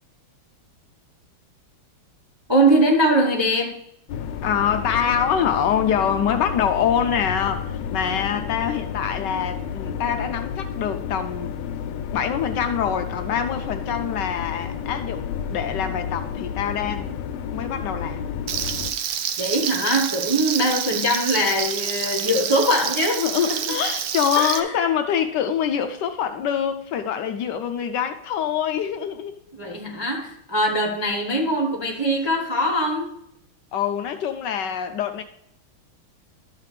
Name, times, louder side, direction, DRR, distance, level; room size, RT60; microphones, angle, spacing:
voice 1, 2.5-3.8 19.4-23.8 24.4-24.7 29.5-33.1, right 1 dB, 25° right, -1 dB, 0.5 m, -22 dB
sound 1, 4.1-18.9, left 7 dB, 90° left, 1.4 m, -31 dB
voice 2, 4.4-11.6 12.1-17.2 17.5-18.2 23.2-29.4 33.7-35.2, left 8 dB, 70° left, 7 dB, 1.1 m, -25 dB
Frying (food), 18.5-24.6, right 8 dB, 80° right, 0.8 m, -28 dB
12.5 x 7.4 x 3.3 m, 0.75 s
omnidirectional pair, 2.2 m